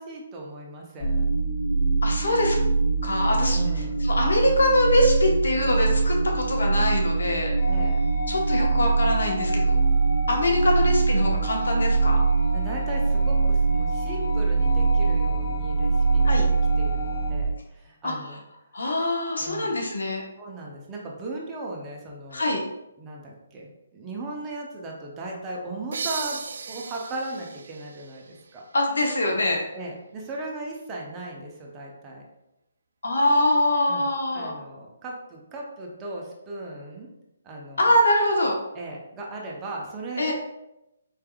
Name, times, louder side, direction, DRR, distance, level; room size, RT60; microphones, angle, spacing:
voice 1, 0.0-1.3 3.5-4.0 7.6-8.0 12.5-18.4 19.4-19.8 20.4-22.6 23.0-28.2 28.5-28.6 29.7-32.3 33.9-37.1 37.4-37.9 38.7-40.3, right 2 dB, 20° right, -2 dB, 0.7 m, -37 dB
sound 1, 1.0-17.4, right 4 dB, 35° left, 0.6 m, -23 dB
voice 2, 2.0-2.6 3.0-3.6 4.0-7.5 8.3-9.7 10.3-12.2 16.2-16.4 18.0-18.1 18.7-20.2 22.3-22.6 28.7-29.6 33.0-34.5 37.8-38.6 40.2-40.3, left 1 dB, 80° left, 0 dB, 1.0 m, -23 dB
sound 2, 7.6-17.3, left 2 dB, 55° left, 0.9 m, -35 dB
sound 3, 25.9-29.3, right 5 dB, 65° right, 0.3 m, -37 dB
4.5 x 3.3 x 2.3 m, 0.90 s
hypercardioid pair, 155°, 0 cm